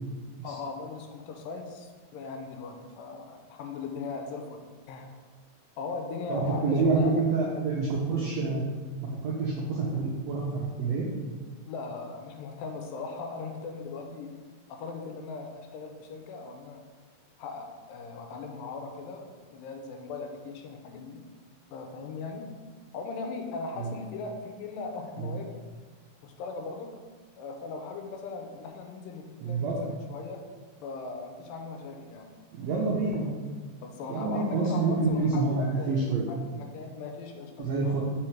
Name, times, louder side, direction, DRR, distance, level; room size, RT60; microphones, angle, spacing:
voice 1, 0.4-5.1 5.8-7.2 7.6-7.7 11.7-14.3 14.7-16.8 17.4-21.2 21.7-22.5 22.9-25.7 26.2-27.0 27.4-30.4 30.8-32.4 33.8-38.0, left 4 dB, 90° left, 4 dB, 2.3 m, -39 dB
voice 2, 6.3-8.6 9.2-11.1 23.8-23.9 25.2-25.3 29.4-29.8 32.5-33.3 34.1-36.2 37.6-38.0, right 3 dB, 85° right, -4 dB, 1.5 m, -27 dB
4.9 x 4.4 x 4.5 m, 1.5 s
omnidirectional pair, 4.0 m